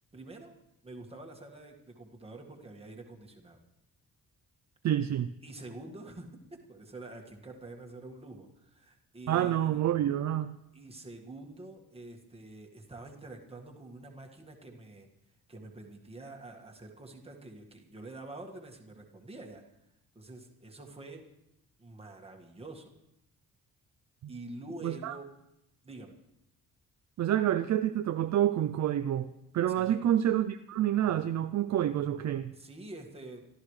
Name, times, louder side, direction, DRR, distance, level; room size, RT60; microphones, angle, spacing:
voice 1, 0.1-0.6 0.8-3.6 5.4-9.8 10.7-15.1 15.5-19.6 20.1-21.2 21.8-22.9 24.3-25.3 25.8-26.1 29.7-30.0 32.5-33.4, right 2 dB, 15° right, 1.8 m, -47 dB
voice 2, 4.8-5.3 9.3-10.6 24.2-24.3 24.8-25.2 27.2-32.5, right 11 dB, 50° right, 0.4 m, -28 dB
25.5 x 13.0 x 3.2 m
wide cardioid pair, 160°, 35 cm